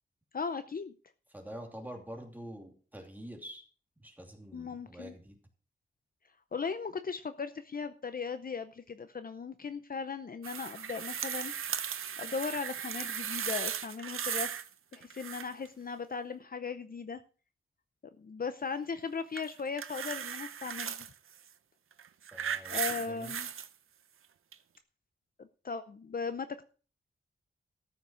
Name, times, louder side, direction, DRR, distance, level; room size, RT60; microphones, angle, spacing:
voice 1, 0.3-0.9 4.5-5.1 6.5-11.5 12.2-14.6 14.9-17.2 18.2-21.0 22.7-23.5 25.4-26.6, left 5 dB, 45° left, 10 dB, 0.6 m, -37 dB
voice 2, 1.3-3.6 4.0-5.4 22.3-23.3, equal, 10° right, 2 dB, 2.7 m, -46 dB
sound 1, 10.4-14.7 14.9-15.7 19.3-21.1 21.9-23.7 24.5-24.6, right 8 dB, 85° right, 0.7 m, -37 dB
13.5 x 5.9 x 6.2 m, 0.39 s
wide cardioid pair, 135°, 21 cm